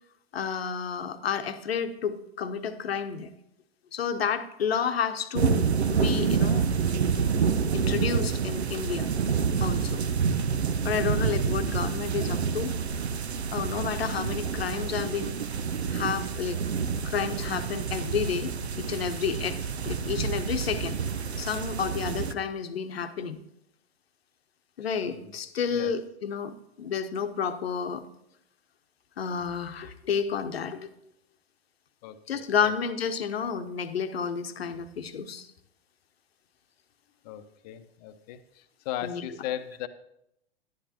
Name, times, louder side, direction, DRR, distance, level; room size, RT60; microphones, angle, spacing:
voice 1, 0.3-3.3 3.9-5.6 5.9-6.7 7.7-9.1 9.6-10.0 10.8-12.7 13.5-15.4 15.9-16.6 17.0-19.6 19.9-21.0 21.4-23.4 24.8-28.0 29.2-30.9 32.3-35.5 39.0-39.2, left 6 dB, 70° left, 9 dB, 0.9 m, -30 dB
sound 1, 5.3-22.3, right 6 dB, 85° right, 0.6 m, -28 dB
voice 2, 32.0-32.7 37.2-39.9, left 12 dB, 40° left, 11 dB, 0.7 m, -38 dB
11.0 x 9.9 x 3.0 m, 0.80 s
figure-of-eight pair, 100°, 32 cm